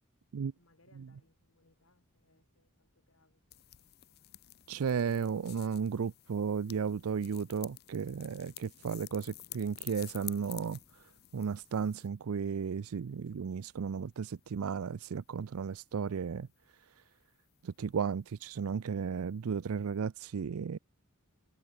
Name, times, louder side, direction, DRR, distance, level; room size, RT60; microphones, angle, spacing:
voice 1, 0.5-4.4 9.1-9.4, left 2 dB, 65° left, 3.8 m, -70 dB
sound 1, 3.5-12.1, left 16 dB, 45° left, 0.6 m, -50 dB
voice 2, 4.7-16.5 16.8-17.0 17.6-20.8, right 6 dB, 75° right, 0.4 m, -34 dB
head